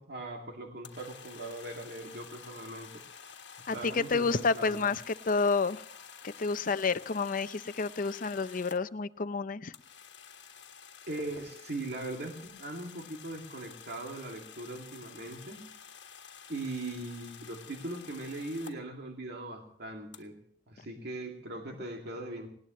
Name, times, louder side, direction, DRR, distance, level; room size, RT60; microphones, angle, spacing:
voice 1, 0.0-2.9 3.7-4.9 11.1-15.6 16.5-20.4 20.7-22.5, right 2 dB, 65° right, 2 dB, 2.5 m, -40 dB
sound 1, 0.8-8.8 9.7-18.8 20.1-20.2, left 7 dB, 75° left, 1.5 m, -50 dB
voice 2, 3.7-5.8 6.2-9.7, left 4 dB, 50° left, 13 dB, 0.6 m, -30 dB
19.5 x 18.5 x 3.1 m, 0.64 s
head